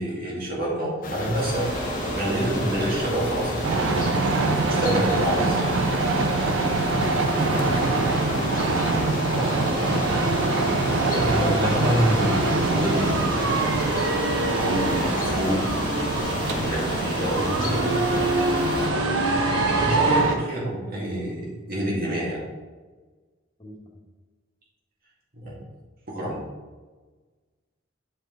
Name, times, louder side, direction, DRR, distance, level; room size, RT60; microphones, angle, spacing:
voice 1, 0.0-5.7 9.3-10.3 10.8-13.1 13.4-13.5 14.5-18.0 19.4-22.4 25.3-25.6 26.1-26.4, right 1 dB, 45° right, -5 dB, 2.0 m, -28 dB
sound 1, 1.0-18.9, left 2 dB, 45° left, 0.9 m, -33 dB
sound 2, 1.3-20.2, right 1 dB, 25° right, 1.3 m, -32 dB
sound 3, 3.6-20.4, right 3 dB, 75° right, 0.7 m, -24 dB
voice 2, 6.5-8.6 23.6-23.8, equal, 25° left, -5 dB, 1.7 m, -37 dB
7.4 x 4.9 x 3.7 m, 1.3 s
head